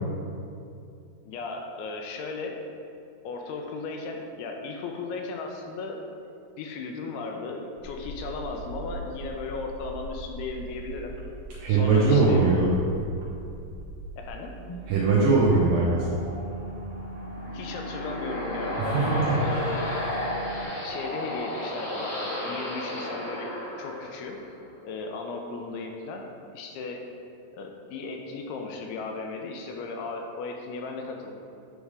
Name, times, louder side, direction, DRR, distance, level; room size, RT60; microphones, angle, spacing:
voice 1, 1.2-2.6 3.2-6.0 6.6-11.1 11.7-12.5 14.2-14.5 17.5-19.9 20.8-23.5 23.8-24.4 24.8-27.0 27.5-31.3, left 3 dB, 80° left, 2 dB, 2.6 m, -36 dB
sound 1, 7.8-14.3, left 1 dB, 65° left, 2.6 m, -41 dB
sound 2, 8.0-20.7, right 1 dB, 60° right, 1.3 m, -41 dB
voice 2, 11.6-12.7 14.9-16.2 18.9-19.3, right 3 dB, 80° right, -5 dB, 2.0 m, -21 dB
sound 3, 17.0-24.5, left 1 dB, 45° left, 1.7 m, -33 dB
9.6 x 3.5 x 4.8 m, 2.5 s
omnidirectional pair, 4.7 m